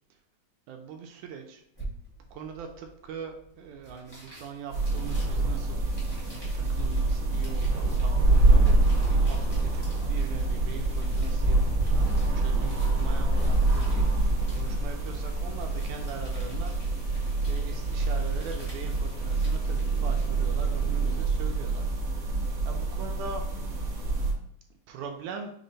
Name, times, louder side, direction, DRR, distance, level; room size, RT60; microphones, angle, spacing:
voice 1, 0.7-1.6 2.3-5.8 6.5-11.9 12.3-14.1 14.5-16.8 17.5-21.9 22.6-23.4 24.9-25.5, right 6 dB, 80° right, 4 dB, 1.7 m, -41 dB
sound 1, 1.7-20.8, right 1 dB, 50° left, 0.4 m, -49 dB
sound 2, 4.7-24.3, right 2 dB, 55° right, 1.3 m, -26 dB
sound 3, 10.5-21.2, left 4 dB, 90° left, 2.3 m, -44 dB
6.1 x 2.1 x 3.8 m, 0.66 s
omnidirectional pair, 3.7 m